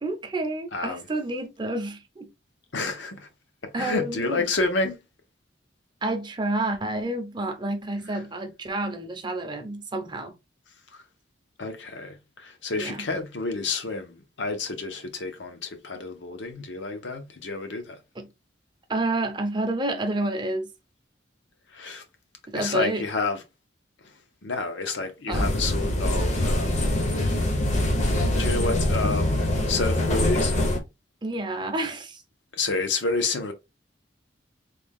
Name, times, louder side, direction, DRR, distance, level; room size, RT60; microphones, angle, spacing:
voice 1, 0.0-2.3 3.7-4.4 6.0-10.3 12.8-13.1 18.2-18.3 18.9-20.7 22.5-23.1 25.3-25.6 31.2-32.2, right 2 dB, 25° right, 0.6 m, -29 dB
voice 2, 0.7-1.0 2.7-3.3 3.6-5.0 8.1-8.2 10.9-11.0 11.6-18.0 21.7-22.0 22.5-23.4 24.4-26.9 28.3-30.5 32.5-33.5, left 3 dB, 75° left, 0.8 m, -29 dB
sound 1, 25.3-30.8, left 1 dB, 40° left, 0.7 m, -24 dB
3.3 x 2.3 x 3.5 m
head